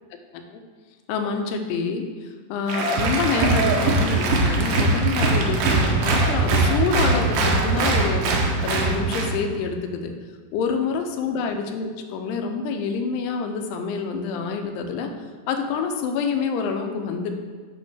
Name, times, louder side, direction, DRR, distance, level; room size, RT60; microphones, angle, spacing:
voice 1, 1.1-10.1 10.5-15.1 15.5-17.3, left 5 dB, 85° left, 5 dB, 2.7 m, -27 dB
Applause, 2.7-9.4, right 3 dB, 75° right, 2.7 m, -21 dB
8.2 x 3.1 x 6.1 m, 1.5 s
omnidirectional pair, 4.8 m